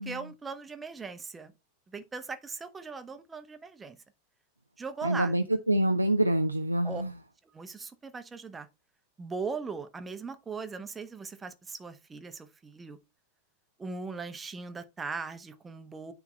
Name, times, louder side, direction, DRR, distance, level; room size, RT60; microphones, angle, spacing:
voice 1, 0.0-1.5 1.9-4.0 4.8-5.3 6.8-7.0 7.5-8.7 9.2-13.0 13.8-16.1, right 4 dB, 15° right, 1.0 m, -39 dB
voice 2, 5.0-7.1, right 1 dB, 85° right, 0.6 m, -26 dB
9.7 x 3.6 x 4.2 m
figure-of-eight pair, 90°, 0 cm